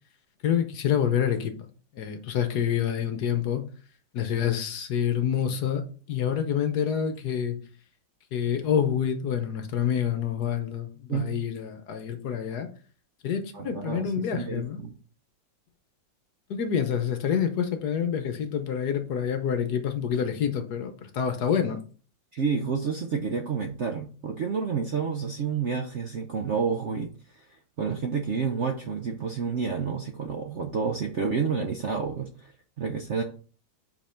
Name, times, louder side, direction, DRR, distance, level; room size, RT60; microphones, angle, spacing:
voice 1, 0.4-1.7 1.9-3.6 4.1-5.8 6.1-7.6 8.3-12.7 13.2-14.8 16.5-21.8, left 8 dB, 65° left, 1.3 m, -27 dB
voice 2, 13.5-15.0 22.3-27.4 27.8-32.5 32.8-33.2, right 5 dB, 60° right, 0.7 m, -29 dB
5.4 x 5.3 x 4.4 m
omnidirectional pair, 2.0 m